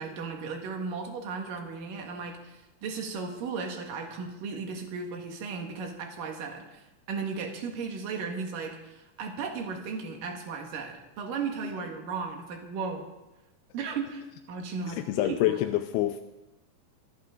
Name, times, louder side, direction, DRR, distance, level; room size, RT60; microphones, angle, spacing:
voice 1, 0.0-13.1 13.7-14.2 14.5-15.6, right 5 dB, 60° right, 3 dB, 3.1 m, -35 dB
voice 2, 14.9-16.2, left 14 dB, 80° left, 6 dB, 2.4 m, -27 dB
25.0 x 12.0 x 3.8 m, 0.98 s
omnidirectional pair, 4.9 m